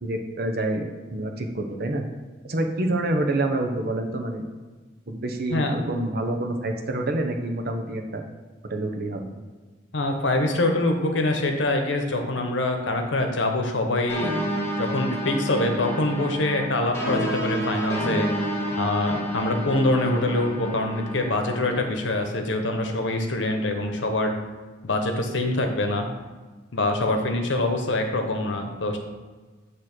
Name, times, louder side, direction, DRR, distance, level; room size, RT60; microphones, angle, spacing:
voice 1, 0.0-2.1 2.5-4.4 5.1-8.2 8.7-9.3, right 1 dB, 55° right, 4 dB, 0.9 m, -27 dB
voice 2, 9.9-14.4 14.8-18.3 18.7-24.4 24.8-26.1 26.7-29.0, left 2 dB, 75° left, 4 dB, 1.0 m, -24 dB
sound 1, 14.1-21.7, equal, 15° left, 1.6 m, -29 dB
8.6 x 3.2 x 6.1 m, 1.3 s
head